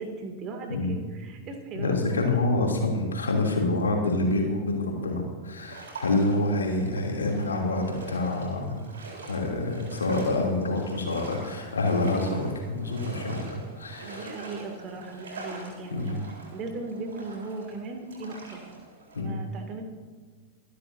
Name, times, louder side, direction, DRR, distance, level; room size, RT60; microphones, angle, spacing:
voice 1, 0.0-2.3 13.9-16.2 16.5-18.6 19.2-19.8, right 3 dB, 35° right, 4 dB, 2.5 m, -38 dB
voice 2, 1.7-8.9 9.3-12.4 12.7-14.4 15.9-16.2 19.1-19.4, left 2 dB, 70° left, 0 dB, 3.0 m, -27 dB
sound 1, 5.6-19.2, right 2 dB, 65° right, 4.0 m, -44 dB
25.5 x 11.5 x 2.8 m, 1.5 s
figure-of-eight pair, 90°, 0 cm